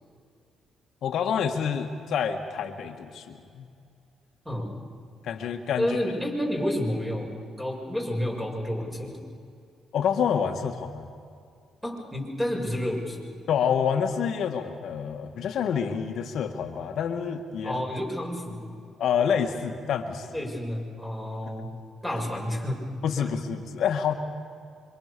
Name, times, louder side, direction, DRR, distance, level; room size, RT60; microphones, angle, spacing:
voice 1, 1.0-3.6 5.2-5.9 9.9-11.1 13.5-17.8 19.0-20.3 23.0-24.1, left 7 dB, 70° left, 4 dB, 1.8 m, -27 dB
voice 2, 4.5-4.8 5.8-7.3 7.6-9.2 11.8-13.3 17.6-18.8 20.3-22.9 23.2-23.3, equal, 5° right, 0 dB, 6.8 m, -30 dB
26.5 x 25.0 x 6.9 m, 2.4 s
cardioid pair, 90°, 0 cm